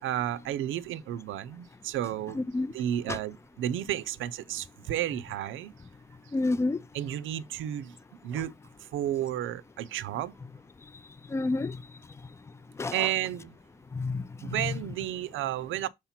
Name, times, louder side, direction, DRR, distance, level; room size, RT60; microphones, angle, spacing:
voice 1, 0.0-2.4 2.7-5.7 6.9-7.9 8.2-8.5 8.9-10.3 12.9-13.6 14.4-15.9, right 12 dB, 80° right, 0.6 m, -32 dB
voice 2, 2.3-2.7 3.1-3.2 6.3-6.8 11.3-11.8 12.8-13.1 13.9-14.8, left 3 dB, 15° left, 0.4 m, -29 dB
6.5 x 2.8 x 5.7 m
cardioid pair, 90°, 20 cm